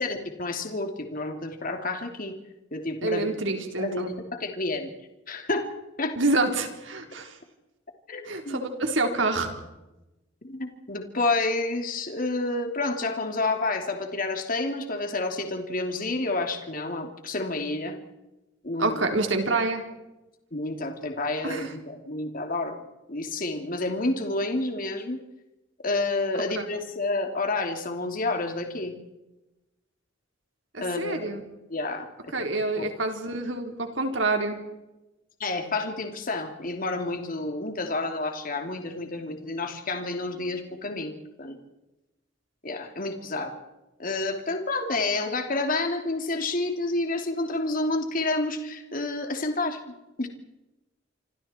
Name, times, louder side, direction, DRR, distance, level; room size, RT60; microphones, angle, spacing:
voice 1, 0.0-2.4 2.7-3.3 3.8-4.9 5.3-5.7 6.0-6.2 8.1-8.6 10.4-18.0 18.6-19.0 20.5-22.7 23.1-25.2 25.8-28.9 30.8-31.4 31.7-32.0 32.5-32.9 35.4-41.1 41.4-41.6 42.6-43.5 44.0-50.3, left 2 dB, 45° left, 5 dB, 3.1 m, -29 dB
voice 2, 3.0-4.2 6.2-7.4 8.2-9.5 18.8-19.8 21.4-21.7 26.3-26.6 30.7-31.4 32.3-34.6, right 2 dB, 75° right, 4 dB, 4.1 m, -27 dB
27.5 x 25.5 x 4.5 m, 1.0 s
head